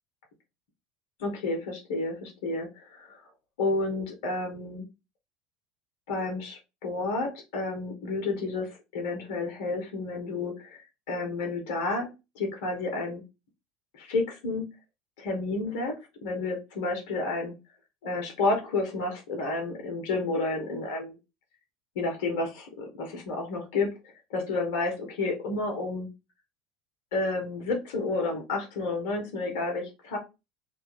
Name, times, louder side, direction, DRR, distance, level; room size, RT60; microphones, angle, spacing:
voice 1, 1.2-3.2 3.6-4.8 6.1-10.8 11.1-12.1 12.3-13.2 13.9-14.7 15.2-17.5 18.0-21.2 21.9-23.9 24.3-26.1 27.1-30.2, left 3 dB, 65° left, 1 dB, 0.9 m, -30 dB
2.7 x 2.4 x 3.0 m, 0.26 s
figure-of-eight pair, 70°, 0 cm